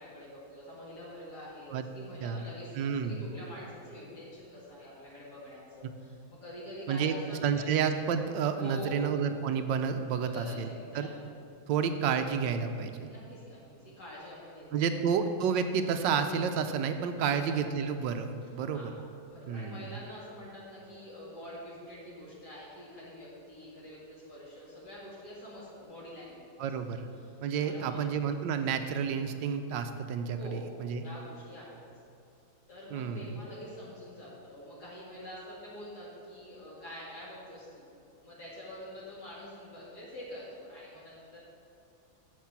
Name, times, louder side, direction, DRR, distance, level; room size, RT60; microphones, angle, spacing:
voice 1, 0.0-7.7 8.6-9.1 10.3-11.1 13.0-15.0 17.2-17.4 18.7-18.9 19.3-26.7 27.2-27.4 27.6-28.1 30.3-31.9 32.7-37.9 38.2-41.4, equal, 55° left, -7 dB, 2.4 m, -46 dB
voice 2, 2.7-3.2 6.9-7.1 7.4-10.7 10.9-11.1 11.7-13.1 14.7-18.9 19.5-19.8 26.6-27.0 27.4-31.0 32.9-33.3, right 6 dB, 75° right, 8 dB, 1.2 m, -30 dB
9.5 x 7.4 x 5.9 m, 2.4 s
omnidirectional pair, 2.2 m